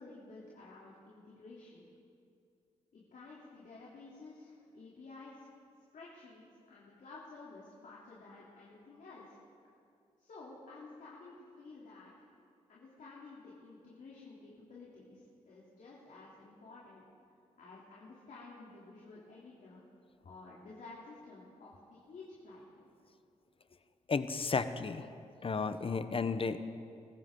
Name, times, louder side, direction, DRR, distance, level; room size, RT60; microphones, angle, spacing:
voice 1, 0.0-1.8 2.9-5.5 5.9-9.4 10.2-12.3 12.7-17.0 17.6-19.8 20.2-22.9, left 3 dB, 65° left, -6 dB, 3.2 m, -52 dB
voice 2, 24.1-25.1 25.4-26.6, left 4 dB, 40° left, 11 dB, 0.9 m, -33 dB
21.0 x 15.0 x 3.8 m, 2.4 s
supercardioid pair, 55°, 14 cm